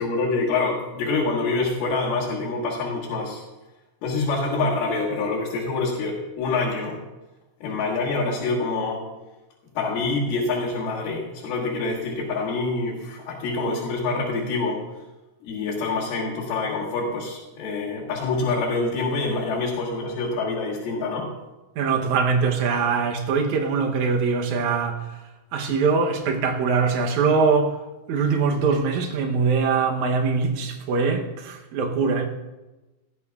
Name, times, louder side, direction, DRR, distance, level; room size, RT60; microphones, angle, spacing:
voice 1, 0.0-3.4 4.0-7.0 7.6-9.0 9.7-14.8 15.4-21.3, left 3 dB, 75° left, 3.4 m, -26 dB
voice 2, 21.8-25.0 25.5-27.8 28.1-32.3, right 5 dB, 70° right, 1.8 m, -22 dB
17.0 x 12.5 x 2.4 m
omnidirectional pair, 4.4 m